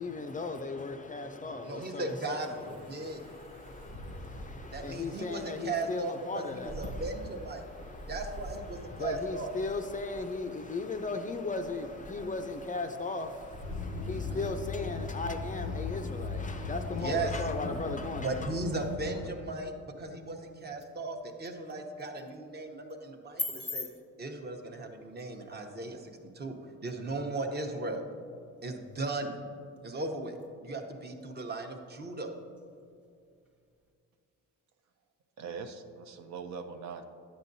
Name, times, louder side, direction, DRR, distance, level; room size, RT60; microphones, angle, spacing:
voice 1, 0.0-18.6, left 3 dB, 25° left, 0.4 m, -37 dB
voice 2, 1.6-3.3 4.7-7.6 8.1-9.5 14.1-14.5 17.0-17.3 18.2-23.9 24.2-28.0 28.6-29.4 29.8-30.3 30.6-32.3, right 3 dB, 35° right, 0.9 m, -37 dB
sound 1, 2.4-19.0, right 1 dB, 90° right, 1.1 m, -48 dB
sound 2, 13.6-19.3, left 4 dB, 90° left, 0.6 m, -37 dB
sound 3, 19.9-33.9, left 2 dB, 5° right, 0.8 m, -47 dB
voice 3, 35.4-37.0, right 5 dB, 65° right, 0.6 m, -41 dB
9.8 x 7.5 x 2.7 m
cardioid pair, 90°, 30 cm